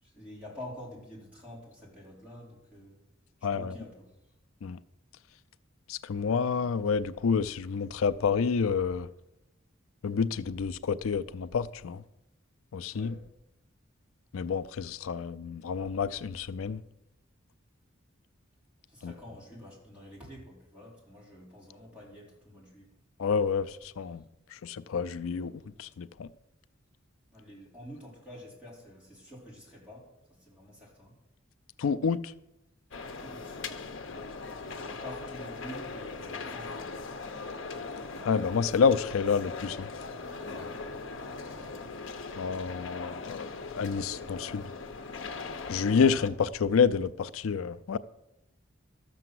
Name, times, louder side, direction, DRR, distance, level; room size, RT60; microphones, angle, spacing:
voice 1, 0.0-3.0 3.4-4.1 12.9-13.2 18.9-22.9 27.3-31.1 33.2-33.6 34.9-36.9 41.4-41.8, left 1 dB, 5° right, 4.3 m, -47 dB
voice 2, 3.4-3.7 4.6-4.8 5.9-9.1 10.0-12.0 12.7-13.1 14.3-16.8 19.0-19.1 23.2-23.7 24.0-24.2 24.6-25.5 25.8-26.3 31.8-32.2 38.2-39.9 42.4-43.5 43.7-44.6 45.7-48.0, left 6 dB, 85° left, 0.4 m, -28 dB
sound 1, 32.9-46.3, left 4 dB, 65° left, 0.9 m, -40 dB
13.0 x 7.0 x 7.7 m
head